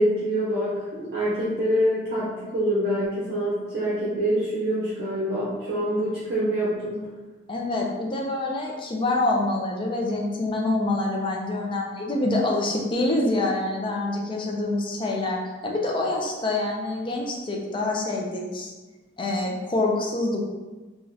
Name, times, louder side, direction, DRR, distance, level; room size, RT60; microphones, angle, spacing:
voice 1, 0.0-7.0, equal, 60° right, -9 dB, 0.7 m, -25 dB
voice 2, 7.5-18.7 19.2-20.4, left 2 dB, 25° left, -1 dB, 0.4 m, -26 dB
3.1 x 2.4 x 2.6 m, 1.2 s
head